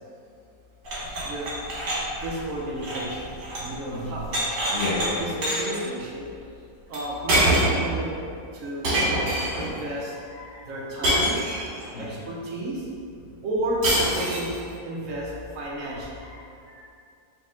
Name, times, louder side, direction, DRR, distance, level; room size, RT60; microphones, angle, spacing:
sound 1, 0.8-3.8 4.0-5.1 5.4-5.8 6.9-7.0 7.3-7.9 8.8-9.7 11.0-11.9 13.8-14.6, right 1 dB, 80° right, 1.8 m, -25 dB
voice 1, 2.2-3.2 3.6-4.4 5.2-6.2 6.9-8.1 8.5-10.1 10.7-11.4 12.0-12.8 13.4-13.8 14.1-14.5 14.8-15.3 15.5-16.1, right 1 dB, 60° right, -4 dB, 0.9 m, -32 dB
voice 2, 4.7-5.2 10.3-10.7 11.9-12.2 15.6-15.7 16.2-16.9, left 3 dB, 60° left, -10 dB, 0.6 m, -34 dB
4.2 x 2.7 x 3.5 m, 2.4 s
omnidirectional pair, 1.8 m